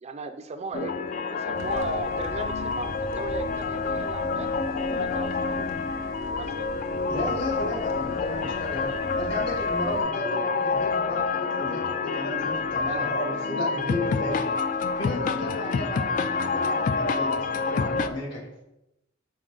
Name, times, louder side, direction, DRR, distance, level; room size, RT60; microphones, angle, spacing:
voice 1, 0.0-0.9 1.3-4.5 4.9-5.7 6.2-6.7 12.8-13.1, right 4 dB, 35° right, 8 dB, 0.4 m, -37 dB
sound 1, 0.7-18.1, left 4 dB, 40° left, 0.3 m, -28 dB
sound 2, 1.5-10.0, right 1 dB, 85° right, 0.8 m, -42 dB
voice 2, 7.1-14.4 15.0-18.6, left 1 dB, 60° left, -3 dB, 2.4 m, -33 dB
6.3 x 4.4 x 3.8 m, 0.88 s
head